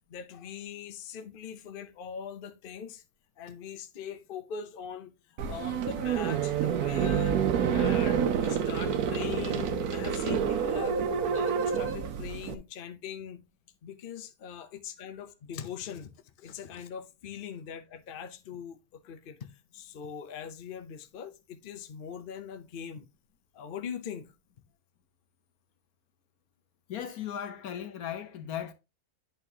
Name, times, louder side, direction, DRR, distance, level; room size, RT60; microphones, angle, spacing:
voice 1, 0.1-3.0 3.4-5.1 5.4-11.0 11.3-13.4 13.8-16.1 16.4-23.1 23.5-24.3, left 8 dB, 45° left, 0.8 m, -41 dB
sound 1, 5.4-12.5, right 7 dB, 90° right, 1.3 m, -28 dB
voice 2, 26.9-28.7, left 9 dB, 80° left, 1.4 m, -37 dB
10.5 x 4.4 x 2.8 m
omnidirectional pair, 1.5 m